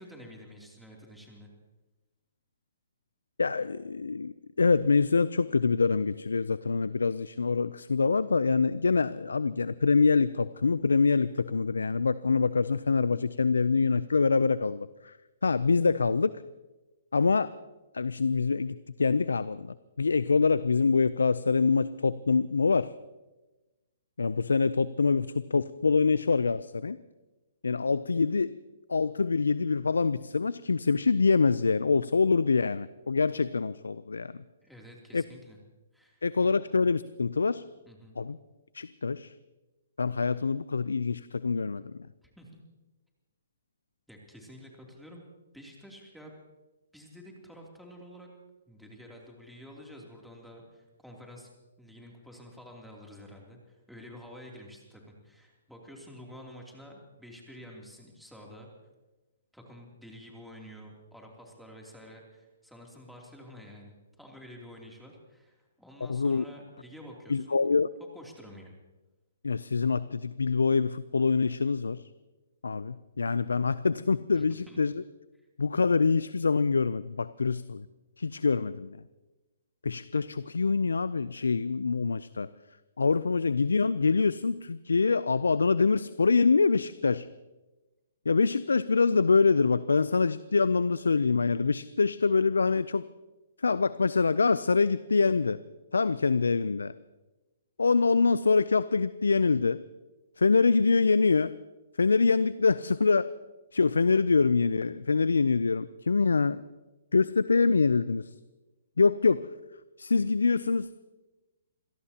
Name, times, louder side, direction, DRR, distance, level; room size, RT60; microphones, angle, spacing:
voice 1, 0.0-1.5 34.6-35.6 35.9-36.2 37.8-38.2 42.2-42.6 44.1-45.2 45.5-46.4 46.9-48.3 48.7-51.5 51.8-58.7 59.5-67.6 68.1-68.7 74.3-74.8, equal, ahead, -1 dB, 2.9 m, -49 dB
voice 2, 3.4-15.1 15.4-16.3 17.1-17.5 17.9-22.9 24.2-27.0 27.6-28.5 28.9-34.3 35.1-35.2 36.2-37.6 38.2-38.4 38.7-39.3 40.0-41.9 66.1-66.4 67.3-67.9 69.4-72.0 72.6-75.0 75.6-77.8 78.2-79.0 79.8-82.5 83.0-87.3 88.3-93.0 93.6-95.6 95.9-96.9 97.8-99.8 100.4-101.5 102.0-103.3 103.7-106.6 107.1-108.3 109.0-109.5 110.0-110.9, left 4 dB, 85° left, 17 dB, 0.4 m, -25 dB
27.0 x 17.5 x 2.9 m, 1.1 s
hypercardioid pair, 135°, 0 cm